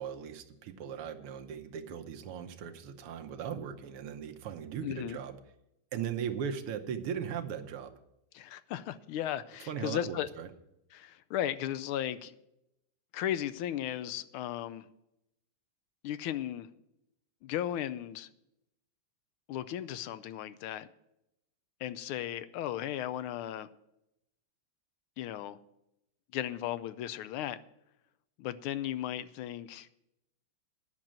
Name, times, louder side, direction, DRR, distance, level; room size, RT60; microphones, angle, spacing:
voice 1, 0.0-5.4 5.9-7.9 9.7-10.5, right 8 dB, 80° right, 1.8 m, -38 dB
voice 2, 4.8-5.2 8.3-10.3 10.9-12.3 13.1-14.9 16.0-16.7 17.4-18.3 19.5-20.9 21.8-23.7 25.2-25.6 26.3-27.6 28.4-29.9, left 11 dB, 80° left, 1.4 m, -36 dB
10.5 x 6.3 x 8.7 m
omnidirectional pair, 2.4 m